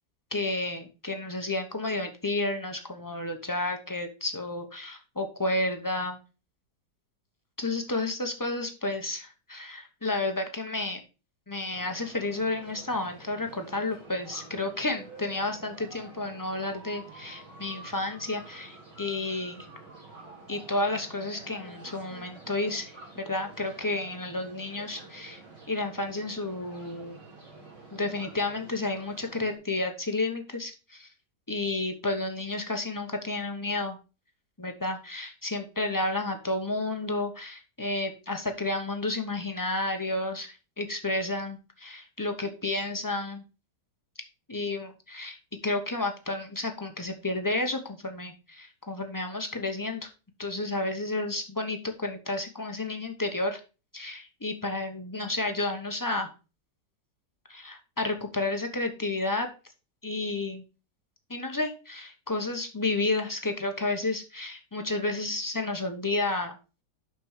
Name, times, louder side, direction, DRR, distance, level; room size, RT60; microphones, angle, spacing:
voice 1, 0.3-6.2 7.6-11.0 11.5-19.7 20.5-25.4 25.7-27.2 27.9-31.1 31.5-34.0 34.6-43.4 44.5-45.4 45.6-50.1 50.4-53.6 53.9-56.3 57.5-59.5 60.0-60.6 61.3-66.6, left 2 dB, 20° left, 5 dB, 0.6 m, -31 dB
sound 1, 11.7-29.6, right 3 dB, 80° right, 3.4 m, -48 dB
6.1 x 5.9 x 4.9 m, 0.32 s
omnidirectional pair, 1.9 m